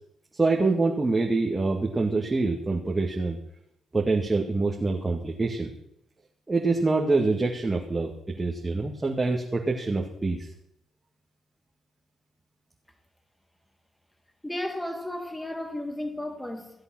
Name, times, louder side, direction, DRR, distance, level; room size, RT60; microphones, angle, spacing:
voice 1, 0.3-3.4 3.9-5.7 6.5-8.1 8.4-10.5, right 3 dB, 25° right, 2.1 m, -25 dB
voice 2, 14.4-16.7, left 1 dB, 10° left, 2.3 m, -33 dB
16.0 x 7.9 x 6.2 m
hypercardioid pair, 45°, 0 cm